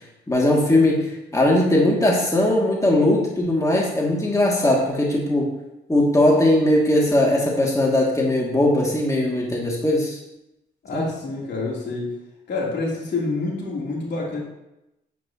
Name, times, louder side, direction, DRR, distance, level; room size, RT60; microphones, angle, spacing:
voice 1, 0.3-5.5 5.9-10.2 10.9-11.1, left 1 dB, 15° left, -3 dB, 2.5 m, -19 dB
voice 2, 10.8-12.1 12.5-14.4, left 3 dB, 55° left, -4 dB, 3.4 m, -27 dB
9.0 x 8.7 x 3.0 m, 0.91 s
supercardioid pair, 55°, 21 cm